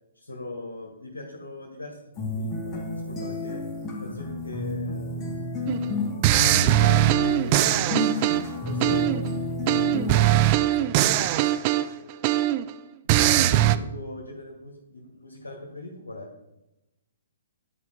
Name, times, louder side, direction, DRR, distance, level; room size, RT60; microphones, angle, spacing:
voice 1, 0.1-2.7 3.1-3.6 4.0-5.4 5.7-8.0 8.5-9.3 9.9-12.2 13.0-16.3, left 2 dB, 85° left, -1 dB, 1.3 m, -40 dB
sound 1, 2.2-10.2, left 2 dB, 15° left, 1.6 m, -31 dB
sound 2, 5.7-5.8 6.2-9.3 9.7-12.7 13.1-13.8, right 14 dB, 35° right, 0.3 m, -21 dB
10.0 x 4.3 x 3.9 m, 0.93 s
figure-of-eight pair, 125°, 0 cm